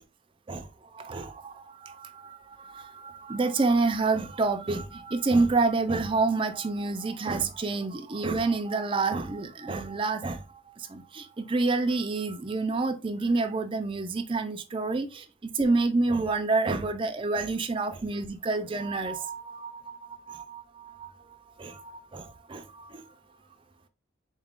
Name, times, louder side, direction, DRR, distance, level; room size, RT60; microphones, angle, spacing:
voice 1, 0.5-21.1 21.6-23.1, right 3 dB, 25° right, 0.4 m, -28 dB
4.0 x 2.4 x 3.5 m
head